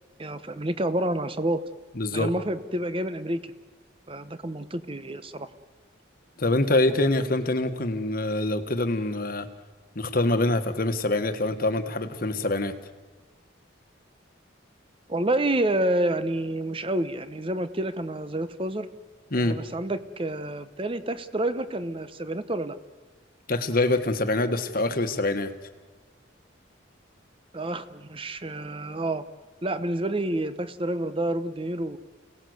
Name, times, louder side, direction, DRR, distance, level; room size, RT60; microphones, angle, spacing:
voice 1, 0.2-1.6 2.1-3.5 4.1-5.5 15.1-18.9 19.4-22.8 27.5-29.2 29.6-32.0, right 1 dB, 25° right, 12 dB, 0.9 m, -28 dB
voice 2, 1.9-2.3 6.4-9.5 9.9-12.7 19.3-19.5 23.5-25.5, left 2 dB, 50° left, 8 dB, 1.5 m, -25 dB
29.5 x 17.5 x 8.0 m, 1.4 s
head